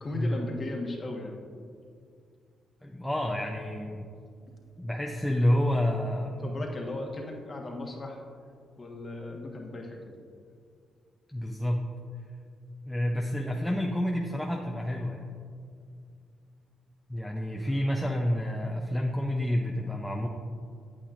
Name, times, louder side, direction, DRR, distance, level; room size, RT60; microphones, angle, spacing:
voice 1, 0.0-1.4 6.4-8.2 8.8-10.0 17.6-17.7, left 2 dB, 35° left, 0 dB, 1.3 m, -36 dB
voice 2, 2.8-4.1 4.8-6.4 11.3-11.8 12.8-15.3 17.1-20.3, left 1 dB, 5° left, 0 dB, 0.6 m, -29 dB
8.6 x 8.4 x 2.5 m, 2.3 s
cardioid pair, 90°, 0 cm